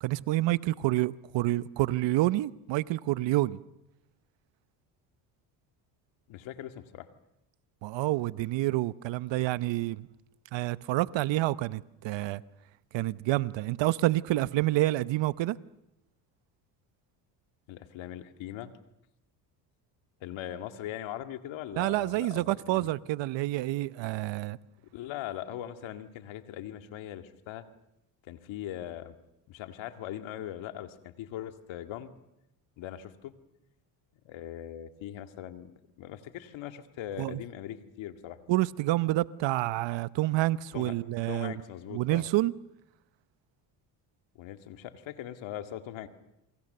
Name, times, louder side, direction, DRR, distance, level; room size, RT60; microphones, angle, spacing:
voice 1, 0.0-3.6 7.8-10.1 10.5-12.4 12.9-15.6 21.7-24.6 37.2-37.4 38.5-41.5 41.9-42.5, right 17 dB, 65° right, 0.9 m, -28 dB
voice 2, 6.3-7.1 17.7-18.7 20.2-22.9 24.9-27.6 28.3-29.1 29.5-32.1 32.8-33.3 34.2-38.4 40.7-40.9 41.3-42.2 44.4-46.1, left 12 dB, 70° left, 2.1 m, -40 dB
28.0 x 24.0 x 6.7 m
supercardioid pair, 75°, 48 cm